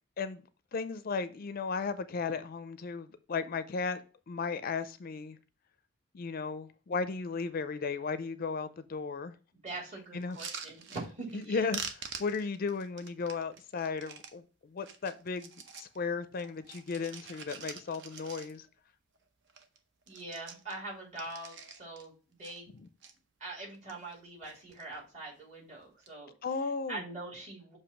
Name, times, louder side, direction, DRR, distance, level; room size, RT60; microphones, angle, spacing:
voice 1, 0.7-5.4 6.1-9.3 10.1-10.4 11.3-11.8 12.2-15.5 15.8-18.7 26.4-27.0, left 4 dB, 45° left, 0.4 m, -35 dB
voice 2, 9.6-11.7 20.1-22.7 23.4-26.3 26.9-27.8, right 2 dB, 35° right, 2.7 m, -43 dB
sound 1, 10.2-11.5 11.7-14.3 14.8-16.0 16.3-18.8 19.1-19.2 19.5-19.8 20.0-22.1 22.4-23.1 23.7-24.2 24.4-25.0 25.8-26.1, right 6 dB, 65° right, 0.7 m, -45 dB
7.0 x 2.7 x 5.7 m
head